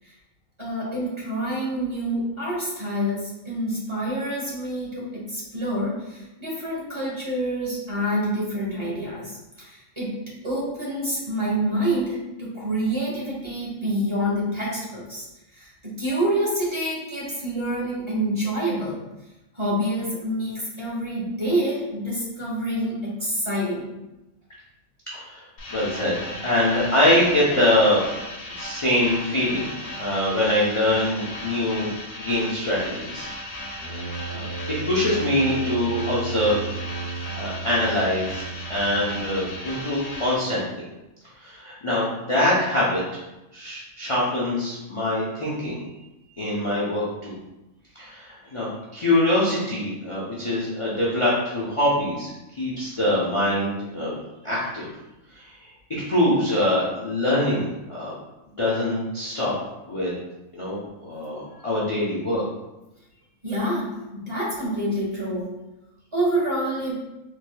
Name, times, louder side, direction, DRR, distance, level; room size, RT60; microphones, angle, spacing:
voice 1, 0.6-10.1 10.4-15.3 15.6-19.0 19.5-23.9 63.4-65.5 66.1-66.9, right 1 dB, 25° right, -7 dB, 1.0 m, -27 dB
voice 2, 25.1-25.4 25.7-28.0 28.6-31.9 32.2-33.3 33.8-36.7 37.4-40.8 41.4-43.2 43.5-45.8 46.4-47.3 47.9-52.3 52.6-54.1 54.4-54.9 55.3-58.1 58.6-59.5 59.9-60.1 60.5-62.4, left 1 dB, 40° left, -8 dB, 0.5 m, -24 dB
sound 1, 25.6-40.3, left 1 dB, 75° left, 1.2 m, -36 dB
Brass instrument, 33.8-39.7, right 4 dB, 55° left, 1.8 m, -34 dB
4.0 x 3.2 x 2.2 m, 0.97 s
omnidirectional pair, 1.5 m